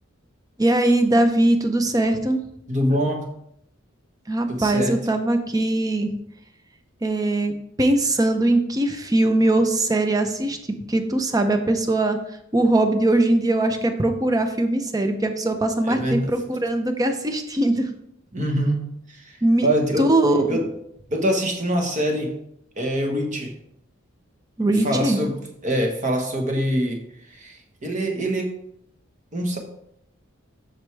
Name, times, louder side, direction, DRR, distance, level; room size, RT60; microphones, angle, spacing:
voice 1, 0.6-2.4 4.3-6.1 7.0-7.5 7.8-10.6 10.9-12.2 12.5-17.9 19.4-19.7 20.0-20.6 24.6-25.2, right 1 dB, 20° right, 7 dB, 0.6 m, -21 dB
voice 2, 2.7-3.3 4.5-5.0 15.8-16.3 18.3-18.8 19.1-20.1 20.5-20.7 21.1-22.3 22.8-23.5 24.8-25.4 25.6-27.0 27.3-28.5 29.3-29.6, equal, 35° right, 3 dB, 1.3 m, -24 dB
7.8 x 6.2 x 3.4 m, 0.74 s
head